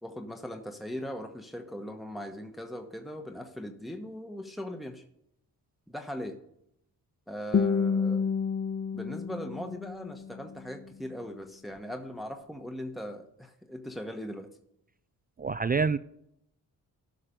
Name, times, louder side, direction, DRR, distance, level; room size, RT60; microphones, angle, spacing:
voice 1, 0.0-5.0 5.9-6.4 7.3-8.3 8.9-14.5, equal, ahead, 5 dB, 1.1 m, -39 dB
Guitar, 7.5-10.5, left 6 dB, 30° left, 0.6 m, -29 dB
voice 2, 15.4-16.0, right 5 dB, 25° right, 14 dB, 0.4 m, -26 dB
13.5 x 5.9 x 5.2 m, 0.76 s
cardioid pair, 70°, 39 cm